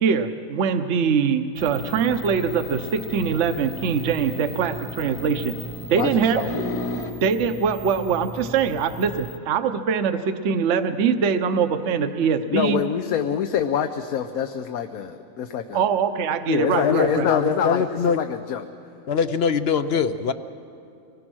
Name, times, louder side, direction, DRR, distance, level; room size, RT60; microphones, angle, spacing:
voice 1, 0.0-5.5 5.9-6.4 7.2-12.8 15.7-17.3, right 6 dB, 60° right, 8 dB, 1.0 m, -23 dB
sound 1, 1.6-9.4, left 1 dB, 25° left, 1.1 m, -35 dB
voice 2, 6.0-6.5 12.5-15.8 16.5-18.7, left 8 dB, 80° left, 7 dB, 1.2 m, -26 dB
voice 3, 16.8-18.2 19.1-20.3, left 6 dB, 60° left, 11 dB, 0.7 m, -22 dB
25.5 x 20.5 x 6.2 m, 2.5 s
omnidirectional pair, 1.5 m